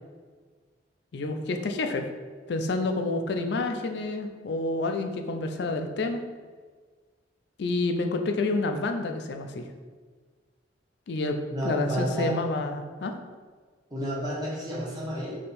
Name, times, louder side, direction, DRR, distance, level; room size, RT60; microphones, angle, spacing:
voice 1, 1.1-2.1 2.5-6.2 7.6-9.7 11.1-13.2, left 2 dB, 60° left, 6 dB, 0.4 m, -29 dB
voice 2, 11.5-12.3 13.9-15.4, equal, 20° right, -6 dB, 1.1 m, -31 dB
3.7 x 2.8 x 4.1 m, 1.5 s
head